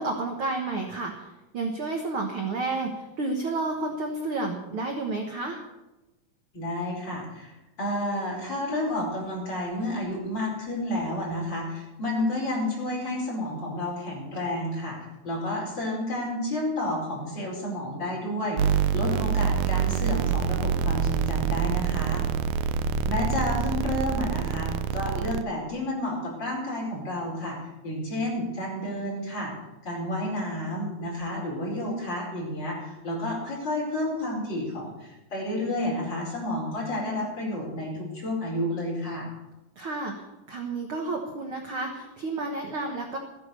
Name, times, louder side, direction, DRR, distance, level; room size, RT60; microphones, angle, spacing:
voice 1, 0.0-5.6 39.8-43.2, right 3 dB, 55° right, 2 dB, 1.6 m, -31 dB
voice 2, 6.5-7.5 7.8-15.0 15.2-22.2 23.1-27.6 27.8-29.5 29.8-39.3, left 1 dB, 30° left, -3 dB, 5.2 m, -30 dB
sound 1, 18.6-25.4, right 7 dB, 80° right, 1.8 m, -26 dB
14.5 x 9.7 x 6.7 m, 1.0 s
omnidirectional pair, 3.9 m